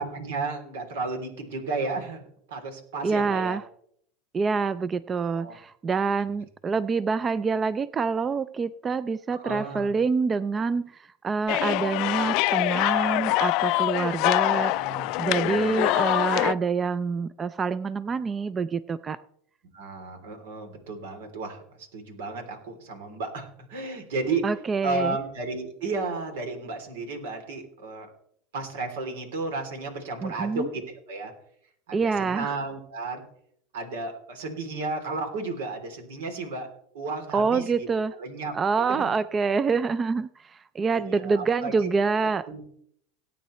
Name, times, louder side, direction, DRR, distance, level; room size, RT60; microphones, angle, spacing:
voice 1, 0.0-2.2 2.5-3.6 5.3-5.6 9.3-9.9 14.5-15.8 19.7-24.5 24.8-28.1 28.5-30.8 31.1-31.3 31.9-33.2 33.7-36.7 36.9-37.9 38.2-38.5 38.9-39.1 40.9-41.7 42.5-42.6, right 3 dB, 85° right, 5 dB, 3.2 m, -33 dB
voice 2, 3.0-3.6 4.3-14.9 15.2-19.2 24.4-25.2 30.2-30.7 31.9-32.5 37.3-38.1 38.5-42.6, right 5 dB, 25° right, 16 dB, 0.4 m, -26 dB
sound 1, 11.5-16.5, left 21 dB, 60° left, 0.3 m, -24 dB
18.5 x 9.0 x 3.2 m, 0.67 s
supercardioid pair, 115°, 0 cm